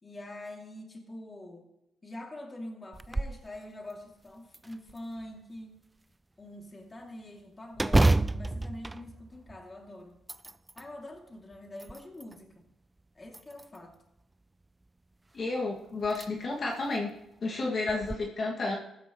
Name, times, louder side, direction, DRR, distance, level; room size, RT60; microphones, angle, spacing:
voice 1, 0.0-1.7 2.0-5.8 6.4-10.2 10.8-12.7 13.1-14.0, left 1 dB, 25° left, 1 dB, 2.6 m, -45 dB
sound 1, 2.9-3.4 3.9-4.0 4.5-5.3 7.7-9.7 10.1-10.9 11.5-12.4 13.3-13.9 15.4-15.5 16.0-16.3 16.7-16.8 17.9-18.2, right 2 dB, 15° right, 0.4 m, -29 dB
voice 2, 15.3-17.1 17.4-18.8, left 3 dB, 45° left, -2 dB, 2.1 m, -31 dB
14.5 x 13.5 x 3.1 m, 0.86 s
cardioid pair, 90°, 0 cm